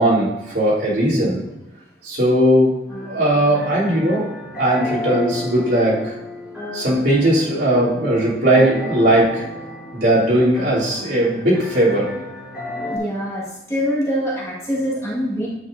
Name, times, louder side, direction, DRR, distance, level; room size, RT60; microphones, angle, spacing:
voice 1, 0.0-1.4 2.0-2.7 3.0-4.2 4.6-6.1 6.7-9.4 9.9-12.1, right 1 dB, 70° right, -8 dB, 3.0 m, -18 dB
sound 1, 2.9-13.0, left 1 dB, 5° right, 2.0 m, -32 dB
voice 2, 12.9-15.5, equal, 15° left, -5 dB, 1.5 m, -24 dB
8.9 x 7.3 x 2.6 m, 0.94 s
head